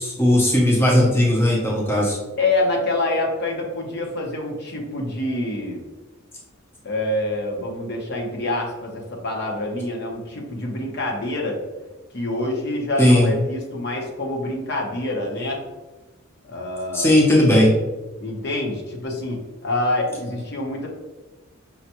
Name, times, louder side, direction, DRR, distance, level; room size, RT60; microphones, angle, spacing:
voice 1, 0.0-2.2 13.0-13.3 16.9-17.8, left 1 dB, 10° left, -3 dB, 0.6 m, -17 dB
voice 2, 2.4-5.9 6.8-11.6 12.1-15.6 16.4-17.2 18.2-20.9, left 2 dB, 50° left, -1 dB, 0.8 m, -26 dB
5.6 x 2.2 x 2.9 m, 1.1 s
head